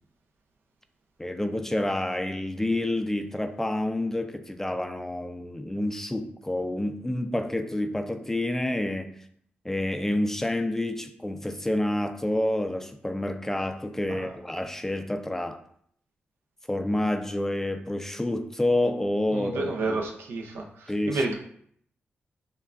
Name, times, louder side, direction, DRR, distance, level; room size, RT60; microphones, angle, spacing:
voice 1, 1.2-9.2 9.6-15.6 16.7-20.0 20.9-21.4, left 1 dB, 10° left, 0.3 m, -28 dB
voice 2, 19.3-20.6 21.1-21.4, right 3 dB, 85° right, 0.6 m, -29 dB
5.4 x 2.2 x 2.4 m
cardioid pair, 70°, 4 cm